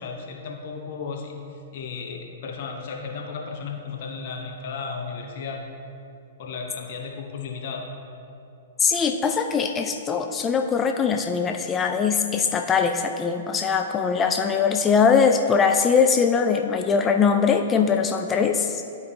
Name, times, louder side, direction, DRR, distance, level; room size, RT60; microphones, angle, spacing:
voice 1, 0.0-1.3 1.7-5.6 6.4-7.9, left 5 dB, 50° left, 2 dB, 0.7 m, -34 dB
voice 2, 8.8-18.8, left 6 dB, 20° left, 5 dB, 0.4 m, -21 dB
11.5 x 4.7 x 2.7 m, 2.6 s
figure-of-eight pair, 105°, 0 cm